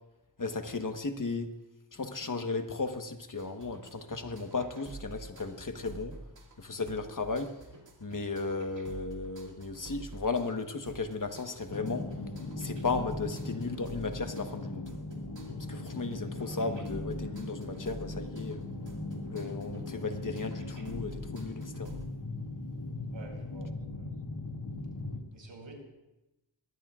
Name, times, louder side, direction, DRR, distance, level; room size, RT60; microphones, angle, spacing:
voice 1, 0.4-1.5 1.9-6.2 6.6-7.5 8.0-12.1 12.6-14.9 15.7-18.6 19.3-21.9, left 3 dB, 45° left, 6 dB, 1.3 m, -35 dB
sound 1, 3.4-22.1, right 3 dB, 70° right, 2.6 m, -49 dB
sound 2, 11.7-25.2, left 2 dB, 70° left, 2.3 m, -39 dB
voice 2, 23.1-24.1 25.3-25.8, right 2 dB, 85° right, 0 dB, 5.1 m, -49 dB
23.0 x 18.5 x 2.5 m, 0.97 s
wide cardioid pair, 90°, 45 cm